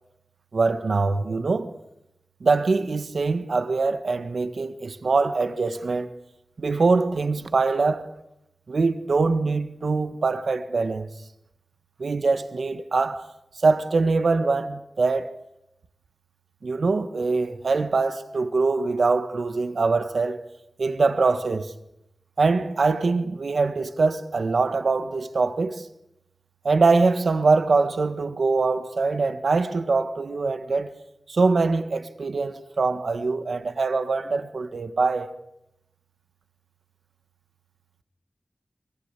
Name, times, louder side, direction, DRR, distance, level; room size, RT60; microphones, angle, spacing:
voice 1, 0.5-1.7 2.4-6.1 6.6-8.1 8.7-11.1 12.0-13.3 13.6-15.4 16.6-20.4 20.8-21.7 22.4-25.9 26.6-30.9 31.3-35.3, right 3 dB, 75° right, 1.7 m, -23 dB
23.0 x 23.0 x 8.4 m
wide cardioid pair, 95°, 0 cm